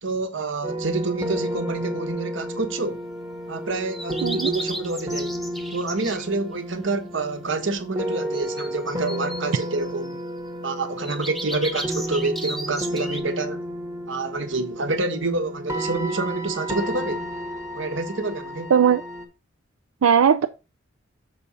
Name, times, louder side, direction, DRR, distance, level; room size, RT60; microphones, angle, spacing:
voice 1, 0.0-3.0 3.5-5.3 5.7-10.2 10.6-13.6 14.1-17.2 17.7-18.7, right 3 dB, 65° right, 1.1 m, -27 dB
sound 1, 0.6-19.3, equal, 15° right, 1.0 m, -32 dB
sound 2, 3.9-6.3 8.3-10.1 11.0-13.2, equal, ahead, 0.6 m, -35 dB
voice 2, 20.0-20.5, right 7 dB, 90° right, 0.4 m, -17 dB
6.7 x 4.9 x 4.1 m
head